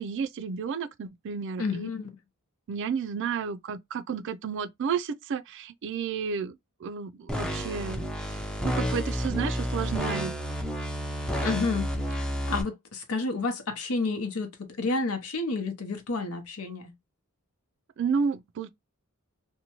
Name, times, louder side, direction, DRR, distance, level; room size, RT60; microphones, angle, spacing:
voice 1, 0.0-1.9 2.7-6.6 6.8-8.0 8.3-10.3 18.0-18.7, right 6 dB, 55° right, 0.4 m, -32 dB
voice 2, 1.6-2.1 11.4-16.9, left 3 dB, 75° left, 0.7 m, -30 dB
sound 1, 7.3-12.6, equal, 5° left, 0.5 m, -30 dB
2.7 x 2.1 x 2.8 m
head